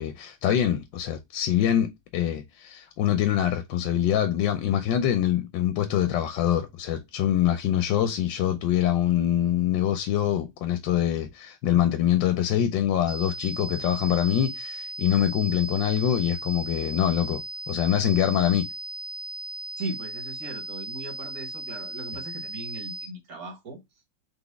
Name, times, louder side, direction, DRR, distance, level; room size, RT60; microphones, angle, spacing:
voice 1, 0.0-18.7, left 11 dB, 80° left, 1.3 m, -24 dB
sound 1, 13.1-23.1, right 1 dB, 20° right, 1.1 m, -37 dB
voice 2, 19.8-23.8, right 2 dB, 55° right, 1.8 m, -38 dB
4.2 x 3.5 x 3.3 m
omnidirectional pair, 2.0 m